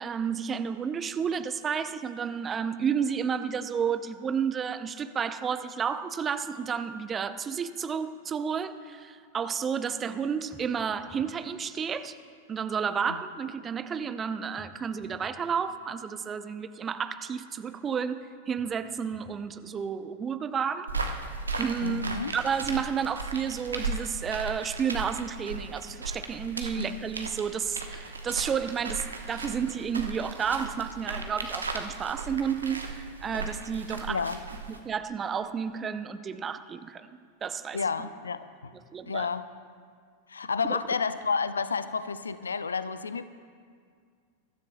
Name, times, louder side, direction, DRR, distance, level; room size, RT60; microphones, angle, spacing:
voice 1, 0.0-12.2 12.5-21.2 21.6-22.1 22.3-34.2 34.7-37.1 37.4-37.8 38.9-39.3 40.7-40.8, right 7 dB, 20° right, 12 dB, 0.6 m, -31 dB
sound 1, 10.5-11.4 14.6-15.4 18.5-19.4 22.0-23.0, left 2 dB, 10° left, 1.1 m, -54 dB
sound 2, 20.9-34.8, right 3 dB, 75° right, 1.0 m, -36 dB
voice 2, 21.8-22.3 26.8-27.0 34.1-34.4 37.7-38.7 39.1-39.5 40.3-43.3, left 5 dB, 75° left, 13 dB, 0.5 m, -30 dB
22.5 x 13.0 x 2.3 m, 2.1 s
figure-of-eight pair, 90°, 0 cm